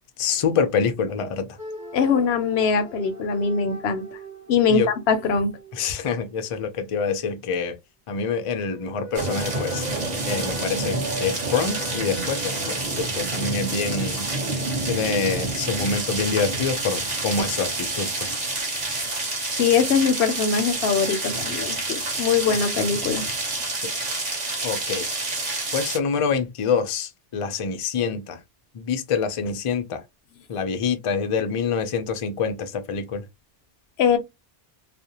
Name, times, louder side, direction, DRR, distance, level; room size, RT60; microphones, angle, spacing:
voice 1, 0.2-1.6 4.7-4.9 5.7-7.7 8.1-9.9 10.2-14.3 14.9-18.4 23.8-23.9 24.6-25.1 25.7-28.4 28.7-30.0 30.5-33.2, left 5 dB, 55° left, 0.4 m, -26 dB
sound 1, 1.6-6.5 8.5-12.8, right 1 dB, 20° right, 0.6 m, -39 dB
voice 2, 1.9-4.0 4.5-5.6 19.6-23.3 34.0-34.2, left 6 dB, 80° left, 0.8 m, -22 dB
sound 2, 9.1-26.0, right 2 dB, 45° right, 1.0 m, -28 dB
2.4 x 2.1 x 2.7 m
omnidirectional pair, 1.0 m